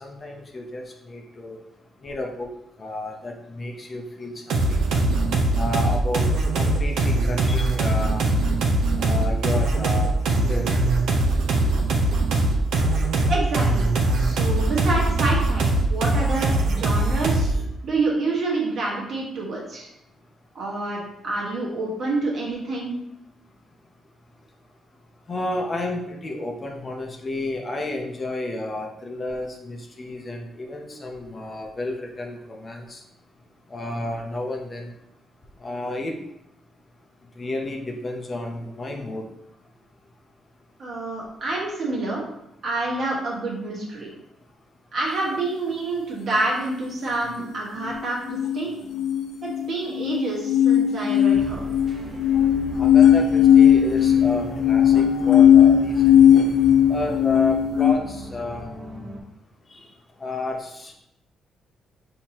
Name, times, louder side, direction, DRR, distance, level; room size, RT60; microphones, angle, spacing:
voice 1, 0.0-1.6 2.0-2.5 2.8-4.4 4.7-4.8 5.6-6.2 6.6-6.9 7.2-8.2 9.0-10.2 10.5-10.7 25.3-33.0 33.7-34.9 35.6-36.2 37.4-39.2 52.8-56.1 56.9-58.7 59.7-59.8 60.2-60.9, left 2 dB, 25° left, 2 dB, 0.6 m, -31 dB
sound 1, 4.5-17.6, right 2 dB, 85° right, 0.7 m, -21 dB
voice 2, 13.3-13.9 14.2-17.5 17.8-19.9 20.5-23.0 40.8-42.2 42.6-44.1 44.9-48.7 49.4-51.6, right 2 dB, 45° right, -3 dB, 1.4 m, -27 dB
sound 2, 48.3-57.9, left 9 dB, 80° left, 0.5 m, -17 dB
sound 3, 51.3-59.2, equal, 20° right, 0.9 m, -37 dB
6.3 x 2.8 x 2.9 m, 0.81 s
cardioid pair, 155°, 0 cm